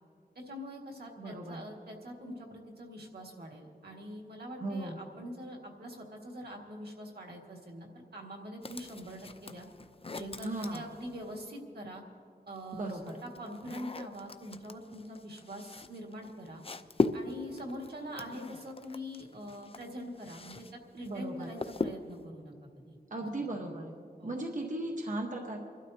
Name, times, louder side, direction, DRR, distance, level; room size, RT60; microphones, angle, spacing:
voice 1, 0.4-9.7 10.1-12.0 12.5-12.9 13.2-16.6 17.1-20.6 20.9-22.5 22.9-23.0 23.4-23.6 24.2-24.3, equal, 80° right, 0 dB, 2.0 m, -44 dB
voice 2, 1.2-1.6 4.6-5.0 10.4-10.8 12.7-13.2 21.0-21.5 23.1-23.9 24.2-25.6, right 1 dB, 50° right, 1 dB, 1.2 m, -36 dB
sound 1, 8.6-11.5 12.5-20.7 21.0-22.3, left 3 dB, 35° left, 0.6 m, -38 dB
29.5 x 12.5 x 2.8 m, 2.2 s
wide cardioid pair, 60°, 16 cm